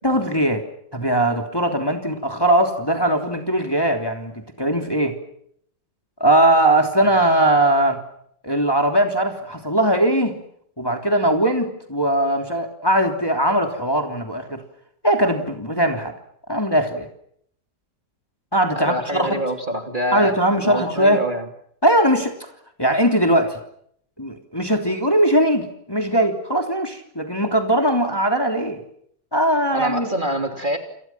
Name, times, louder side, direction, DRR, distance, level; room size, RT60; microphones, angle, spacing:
voice 1, 0.0-0.6 0.9-5.1 6.2-8.0 8.4-10.4 10.8-14.6 15.0-16.1 16.5-17.1 18.5-19.4 20.1-21.2 21.8-22.3 22.8-23.6 24.2-28.8 29.3-30.1, right 1 dB, 10° left, 4 dB, 3.2 m, -20 dB
voice 2, 18.7-20.4 20.6-21.4 29.7-30.8, equal, 25° right, 5 dB, 3.3 m, -25 dB
29.0 x 29.0 x 6.0 m, 0.69 s
omnidirectional pair, 1.9 m